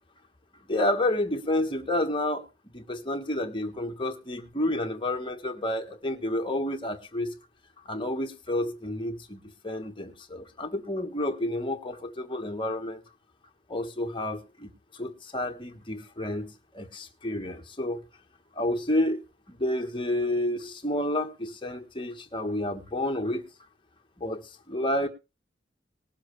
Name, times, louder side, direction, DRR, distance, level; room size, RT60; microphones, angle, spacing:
voice 1, 0.7-2.4 2.7-7.4 7.8-13.0 13.7-18.0 18.5-19.2 19.5-23.5 24.2-25.1, left 1 dB, 30° left, 1.4 m, -30 dB
20.0 x 7.5 x 3.2 m
head